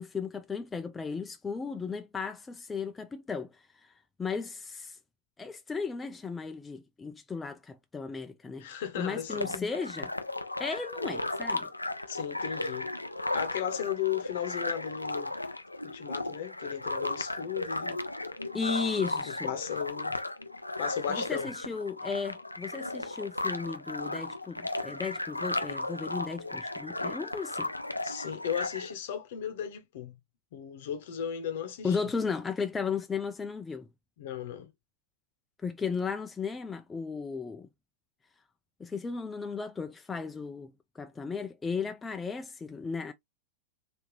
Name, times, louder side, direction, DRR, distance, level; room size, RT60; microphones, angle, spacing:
voice 1, 0.0-3.9 4.2-5.0 5.4-8.7 9.0-10.1 10.6-11.7 18.5-19.5 21.1-27.7 31.8-33.9 35.6-37.7 38.8-43.1, left 5 dB, 15° left, 0.4 m, -35 dB
voice 2, 8.6-9.5 12.1-12.9 13.3-15.3 15.8-18.0 19.2-20.2 20.8-21.5 28.0-30.2 30.5-32.0 34.2-34.7, left 9 dB, 55° left, 0.9 m, -35 dB
sound 1, 9.3-28.9, left 2 dB, 85° left, 0.4 m, -35 dB
3.5 x 2.8 x 3.0 m
figure-of-eight pair, 90°, 0 cm